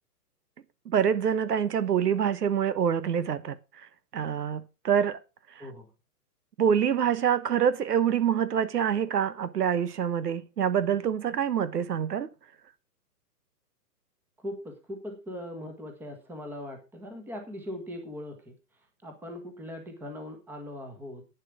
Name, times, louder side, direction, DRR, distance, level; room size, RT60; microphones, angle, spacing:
voice 1, 0.9-3.6 4.1-5.2 5.6-5.7 6.6-12.3, right 8 dB, 75° right, 1.3 m, -26 dB
voice 2, 14.4-18.5 19.0-21.3, left 1 dB, 5° right, 1.4 m, -40 dB
11.0 x 9.4 x 4.9 m
hypercardioid pair, 160°, 47 cm